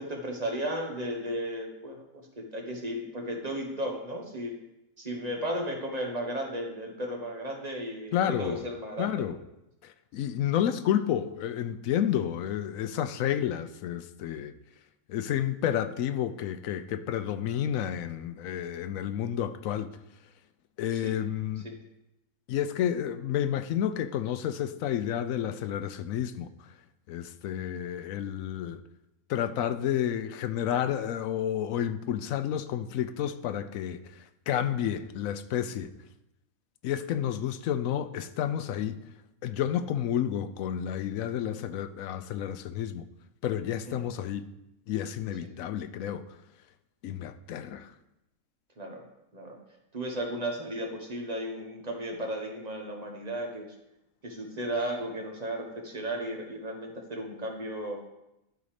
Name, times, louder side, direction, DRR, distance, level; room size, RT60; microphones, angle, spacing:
voice 1, 0.0-4.5 5.0-9.2 20.9-21.2 21.6-21.8 43.9-44.0 45.4-45.5 48.8-49.0 49.3-49.6 49.9-53.7 54.2-58.0, right 1 dB, 30° right, 1.3 m, -35 dB
voice 2, 8.1-8.6 9.0-9.4 9.8-14.5 15.1-19.9 20.8-21.7 22.5-26.5 27.1-28.8 29.3-35.9 36.8-39.0 39.4-43.1 43.4-44.5 44.9-46.2 47.0-47.9, left 10 dB, 75° left, 1.0 m, -30 dB
12.0 x 4.1 x 5.0 m
omnidirectional pair, 1.5 m